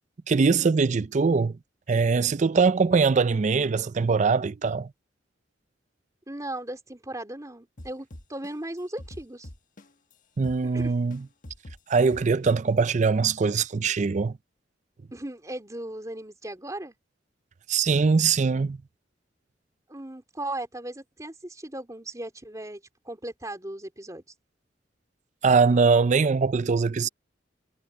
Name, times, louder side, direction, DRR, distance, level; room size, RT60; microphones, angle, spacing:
voice 1, 0.3-1.5 1.9-4.9 10.4-11.2 11.9-14.3 17.7-18.8 25.4-27.1, right 4 dB, 40° right, 0.4 m, -22 dB
voice 2, 6.3-9.5 10.6-10.9 15.1-17.0 19.9-24.2, right 1 dB, 20° right, 3.4 m, -37 dB
sound 1, 7.8-10.1 10.4-12.8, left 1 dB, 45° left, 1.3 m, -44 dB
head